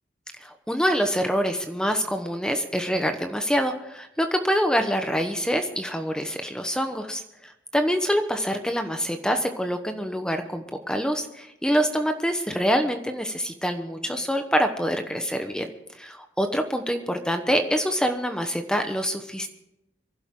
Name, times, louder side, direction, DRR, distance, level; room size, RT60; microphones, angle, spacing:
voice 1, 0.4-15.7 16.0-19.5, equal, 5° left, 6 dB, 1.0 m, -26 dB
26.0 x 11.5 x 3.8 m, 0.89 s
head